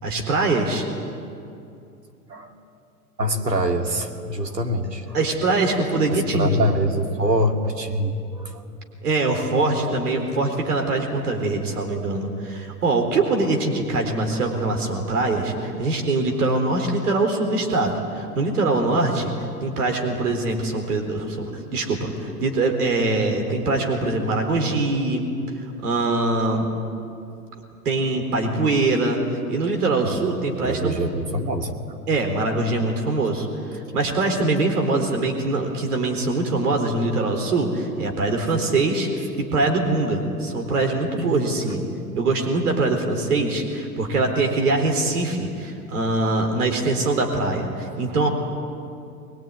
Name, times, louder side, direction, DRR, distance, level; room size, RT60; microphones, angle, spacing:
voice 1, 0.0-0.9 5.1-6.6 9.0-19.3 19.6-25.2 25.8-26.7 27.8-29.2 29.5-31.0 32.1-33.5 33.9-41.8 42.2-48.3, right 2 dB, 70° right, 3 dB, 4.0 m, -23 dB
voice 2, 3.2-5.2 6.0-8.6 30.0-30.2 30.6-31.8, equal, 85° right, 4 dB, 2.5 m, -24 dB
22.5 x 22.0 x 9.6 m, 2.5 s
figure-of-eight pair, 100°, 47 cm